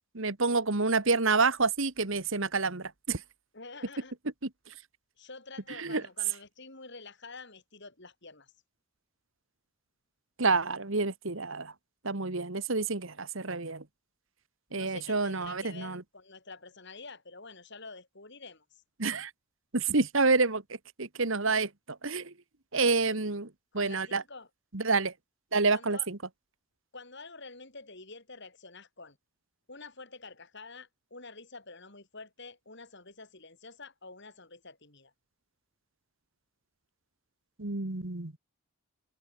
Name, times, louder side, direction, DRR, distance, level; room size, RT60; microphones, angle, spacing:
voice 1, 0.1-3.2 5.8-6.0 10.4-11.7 12.0-13.8 14.7-16.0 19.0-19.3 19.7-20.6 21.0-22.3 22.7-23.5 23.7-24.2 24.7-25.1 25.5-26.2 37.6-38.3, right 3 dB, 60° right, 1.6 m, -28 dB
voice 2, 3.5-4.2 5.2-8.5 14.7-18.8 22.9-23.2 23.7-24.5 25.7-26.1 26.9-29.2 29.7-35.1, left 3 dB, 50° left, 5.2 m, -48 dB
head